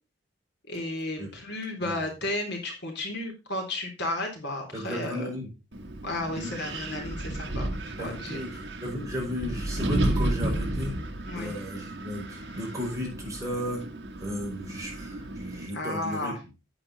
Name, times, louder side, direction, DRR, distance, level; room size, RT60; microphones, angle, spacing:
voice 1, 0.7-5.3 6.0-8.4 11.3-11.5 15.7-16.4, left 1 dB, 65° left, 1 dB, 3.6 m, -33 dB
voice 2, 4.7-5.5 6.3-6.5 8.0-10.9 11.3-13.8 14.2-16.3, left 1 dB, 20° right, -2 dB, 5.0 m, -34 dB
Wind, 5.7-15.7, right 1 dB, 70° right, 1.6 m, -33 dB
9.1 x 8.8 x 4.1 m, 0.29 s
head